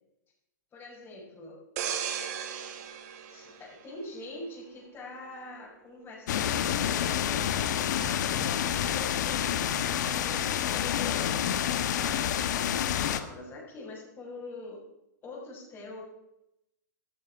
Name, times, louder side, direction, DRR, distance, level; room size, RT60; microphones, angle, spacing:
voice 1, 0.7-1.6 3.3-9.5 10.1-14.8 15.2-16.0, left 2 dB, 20° left, -4 dB, 6.2 m, -44 dB
sound 1, 1.8-4.4 4.9-5.1, right 9 dB, 50° right, 2.2 m, -36 dB
sound 2, 6.3-13.2, left 10 dB, 65° left, 1.3 m, -28 dB
13.5 x 13.0 x 5.7 m, 0.84 s
hypercardioid pair, 140°, 10 cm